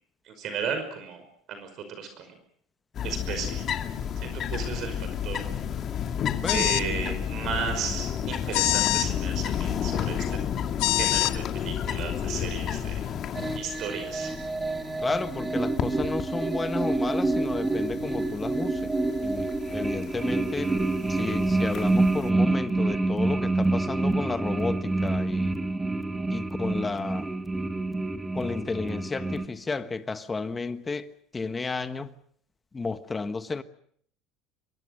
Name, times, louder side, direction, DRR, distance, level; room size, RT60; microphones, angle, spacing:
voice 1, 0.3-1.2 1.5-2.3 3.0-3.7 4.2-5.4 6.5-10.4 11.0-13.1 13.6-14.3, right 6 dB, 45° right, 5.4 m, -34 dB
sound 1, 2.9-22.3, left 9 dB, 35° left, 2.2 m, -32 dB
voice 2, 6.4-6.8 15.0-18.9 19.2-20.8 21.1-25.6 26.3-27.3 28.3-32.1 32.7-33.6, left 4 dB, 15° left, 1.3 m, -32 dB
sound 2, 6.5-6.9 8.5-9.1 10.8-11.3, left 19 dB, 75° left, 1.3 m, -24 dB
sound 3, 13.3-29.4, right 2 dB, 10° right, 1.7 m, -27 dB
26.0 x 22.5 x 6.6 m
cardioid pair, 150°, 0 cm